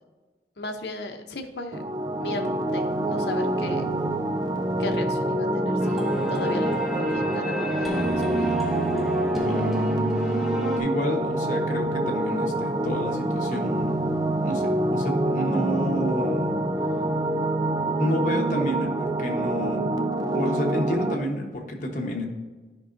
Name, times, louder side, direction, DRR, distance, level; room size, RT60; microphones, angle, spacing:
voice 1, 0.6-1.8 2.2-3.9 4.8-6.0 6.3-8.5, left 3 dB, 75° left, 5 dB, 0.8 m, -36 dB
sound 1, 1.7-21.1, right 1 dB, 25° right, 0.4 m, -26 dB
sound 2, 5.8-10.8, right 1 dB, ahead, 0.8 m, -29 dB
voice 2, 9.4-9.8 10.1-10.4 10.8-14.0 14.4-16.5 18.0-19.9 20.3-22.3, equal, 45° left, 0 dB, 1.1 m, -30 dB
10.5 x 5.4 x 2.6 m, 1.3 s
head